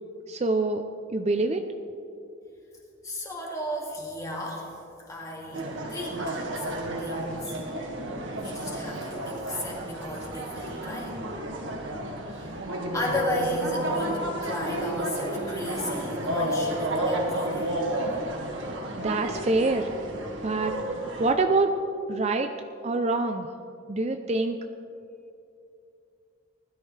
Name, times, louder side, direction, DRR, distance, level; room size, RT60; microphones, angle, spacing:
voice 1, 0.3-0.8 1.1-1.6 19.0-19.9 20.4-20.7 21.2-21.7 22.1-22.5 22.8-23.5 23.9-24.6, right 3 dB, 35° right, 6 dB, 0.5 m, -25 dB
voice 2, 3.0-4.7 5.1-7.6 8.3-11.2 12.3-12.6 12.9-17.8, left 1 dB, 15° left, -2 dB, 2.2 m, -34 dB
sound 1, 5.5-21.3, right 1 dB, 75° right, 1.8 m, -31 dB
20.0 x 12.5 x 3.3 m, 2.6 s
head